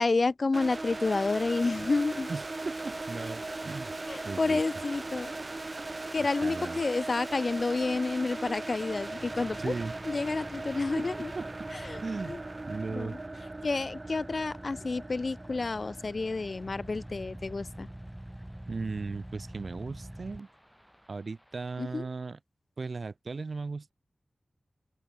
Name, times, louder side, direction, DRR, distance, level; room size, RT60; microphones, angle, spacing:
voice 1, 0.0-2.3 4.1-5.3 6.1-9.7 10.1-11.3 11.9-12.0 12.3-12.4 12.9-13.1 13.6-17.9 21.8-22.0, left 3 dB, 55° left, 0.4 m, -29 dB
sound 1, 0.5-17.4, right 2 dB, 40° right, 0.4 m, -39 dB
voice 2, 2.3-3.9 4.2-4.6 6.2-6.8 9.6-9.9 11.0-11.7 12.0-12.4 12.7-13.2 18.7-20.5 21.1-22.4 22.8-23.9, right 4 dB, 65° right, 0.8 m, -37 dB
Car / Idling, 8.3-21.1, right 1 dB, 10° right, 0.8 m, -46 dB
sound 2, 11.8-21.8, equal, 5° left, 6.5 m, -64 dB
open air
wide cardioid pair, 80°, 0 cm